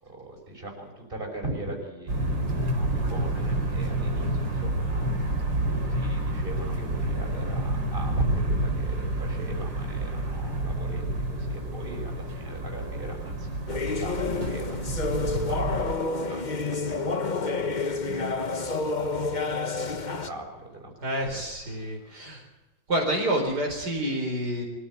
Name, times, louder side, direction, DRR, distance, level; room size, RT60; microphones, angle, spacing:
voice 1, 0.0-14.8 15.3-21.1 21.3-21.4 21.7-22.2, right 2 dB, 30° right, 1 dB, 5.9 m, -40 dB
sound 1, 2.1-16.0, right 1 dB, 85° right, 4.6 m, -29 dB
sound 2, 13.7-20.3, left 3 dB, 30° left, 1.2 m, -29 dB
voice 2, 21.0-22.4 22.9-24.6, right 1 dB, 60° right, 0 dB, 5.1 m, -28 dB
24.0 x 15.0 x 9.1 m, 1.1 s
omnidirectional pair, 2.0 m